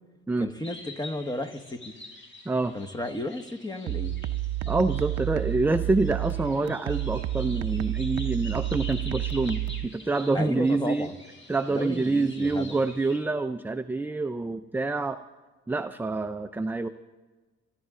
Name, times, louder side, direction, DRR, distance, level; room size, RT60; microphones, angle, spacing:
voice 1, 0.4-2.0 2.7-4.1 10.3-11.1 11.7-12.8, left 1 dB, 15° left, 8 dB, 1.2 m, -33 dB
sound 1, 0.6-13.2, left 2 dB, 40° left, 4.6 m, -47 dB
sound 2, 3.9-9.9, right 14 dB, 80° right, 0.6 m, -30 dB
voice 2, 4.6-11.1 11.5-15.2 15.7-16.9, right 3 dB, 5° right, 8 dB, 0.4 m, -27 dB
26.0 x 11.5 x 3.7 m, 1.3 s
cardioid pair, 90°, 30 cm